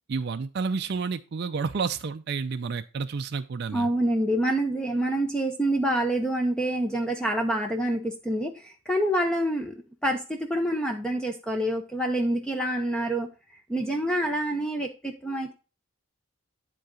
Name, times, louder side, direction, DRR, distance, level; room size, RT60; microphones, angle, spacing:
voice 1, 0.1-3.9, right 5 dB, 50° right, 8 dB, 0.4 m, -30 dB
voice 2, 3.7-13.3 13.7-15.5, right 1 dB, 5° left, 3 dB, 0.7 m, -27 dB
10.5 x 3.9 x 4.7 m, 0.33 s
head